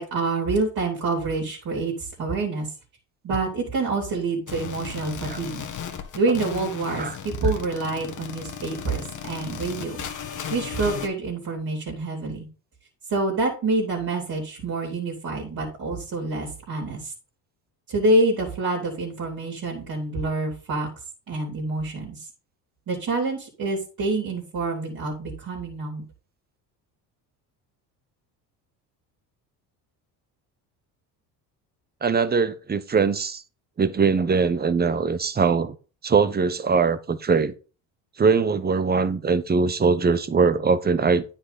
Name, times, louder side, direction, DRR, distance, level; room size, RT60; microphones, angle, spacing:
voice 1, 0.0-2.7 3.2-5.6 6.1-10.1 10.5-12.5 13.1-17.1 17.9-20.9 21.3-22.3 22.9-26.0, right 2 dB, 50° right, 3.4 m, -27 dB
sound 1, 4.5-11.1, left 8 dB, 40° left, 1.6 m, -36 dB
voice 2, 32.0-33.4 33.8-35.8 36.0-37.5 38.2-41.2, right 5 dB, 20° right, 0.9 m, -21 dB
9.4 x 5.6 x 4.2 m
supercardioid pair, 80°, 44 cm